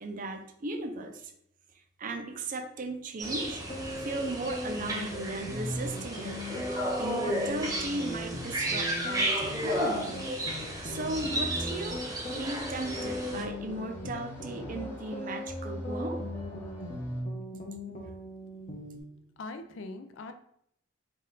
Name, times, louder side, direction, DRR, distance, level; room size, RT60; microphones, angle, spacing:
voice 1, 0.0-1.3 2.0-3.6 4.0-6.4 7.0-10.2 10.5-12.0 12.3-16.2, right 2 dB, 45° right, 6 dB, 0.5 m, -36 dB
sound 1, 3.2-13.4, right 1 dB, 20° right, 0.9 m, -33 dB
sound 2, 3.4-19.0, left 1 dB, 40° left, 0.9 m, -39 dB
sound 3, 10.2-17.2, left 1 dB, 10° left, 0.7 m, -43 dB
voice 2, 19.4-20.3, left 3 dB, 70° left, 8 dB, 0.4 m, -42 dB
4.2 x 2.5 x 3.8 m, 0.71 s
head